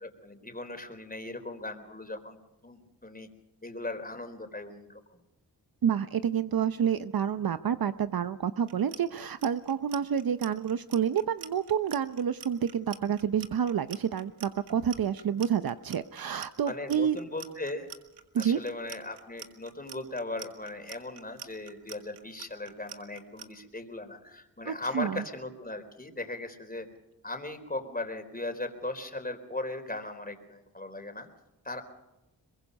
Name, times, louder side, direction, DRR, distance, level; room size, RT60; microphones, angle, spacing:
voice 1, 0.0-2.4 2.6-3.3 3.6-5.0 16.7-17.9 18.4-26.9 27.2-31.3 31.6-31.8, left 2 dB, 20° left, 7 dB, 4.1 m, -38 dB
voice 2, 5.8-17.2 18.3-18.6 24.7-25.2, right 8 dB, 60° right, 12 dB, 0.8 m, -29 dB
Clock, 8.6-23.5, right 7 dB, 80° right, 2.0 m, -46 dB
23.5 x 22.0 x 5.4 m, 0.93 s
cardioid pair, 50°, 40 cm